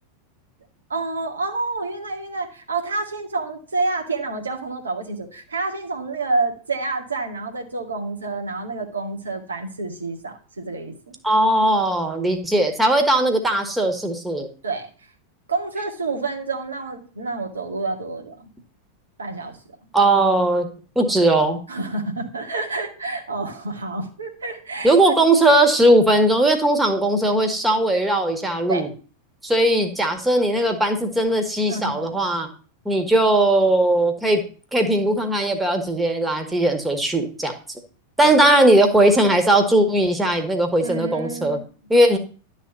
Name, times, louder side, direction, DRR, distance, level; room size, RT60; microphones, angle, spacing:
voice 1, 0.9-11.1 14.6-14.9 15.5-18.5 19.2-19.6 21.7-25.2 28.7-28.8 31.7-32.1 38.2-38.3 40.8-41.6, right 3 dB, 75° right, 2 dB, 2.0 m, -28 dB
voice 2, 11.2-14.5 19.9-20.7 21.0-21.6 24.8-28.9 29.4-32.5 32.9-34.4 34.7-37.5 38.2-41.6 41.9-42.2, right 1 dB, 5° right, 4 dB, 1.9 m, -18 dB
11.5 x 4.2 x 7.0 m, 0.39 s
figure-of-eight pair, 90°, 0 cm